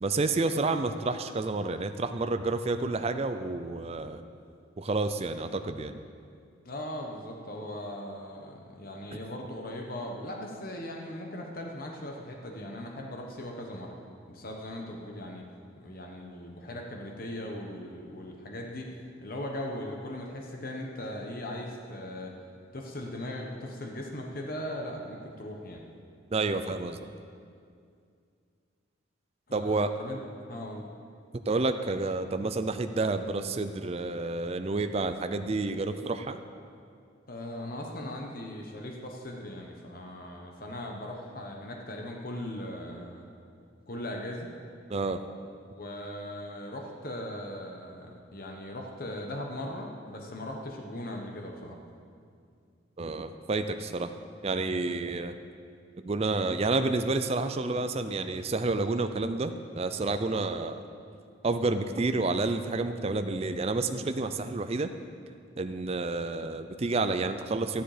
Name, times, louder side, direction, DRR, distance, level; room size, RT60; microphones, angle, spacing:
voice 1, 0.0-4.2 4.8-6.0 9.1-9.2 26.3-27.0 29.5-29.9 31.5-36.4 44.9-45.2 53.0-54.1 54.4-55.3 56.0-60.8 61.4-64.9 65.6-67.8, right 3 dB, 30° right, 8 dB, 0.5 m, -29 dB
voice 2, 6.6-14.0 14.3-15.4 15.8-18.9 19.2-22.3 22.7-25.8 29.5-30.9 37.3-43.2 43.9-44.5 45.7-51.8, left 1 dB, 50° left, 1 dB, 1.2 m, -39 dB
13.0 x 10.5 x 5.0 m, 2.3 s
head